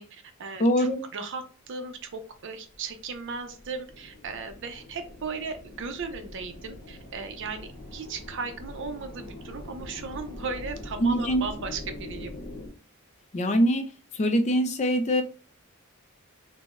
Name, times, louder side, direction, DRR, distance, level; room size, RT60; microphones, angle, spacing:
voice 1, 0.0-12.3, right 4 dB, 60° right, 7 dB, 0.5 m, -36 dB
voice 2, 0.6-1.0 11.0-11.4 13.3-13.9 14.1-15.2, equal, 35° left, 7 dB, 0.4 m, -23 dB
sound 1, 2.6-12.7, left 1 dB, 75° left, 0.8 m, -43 dB
3.8 x 2.0 x 2.4 m, 0.38 s
head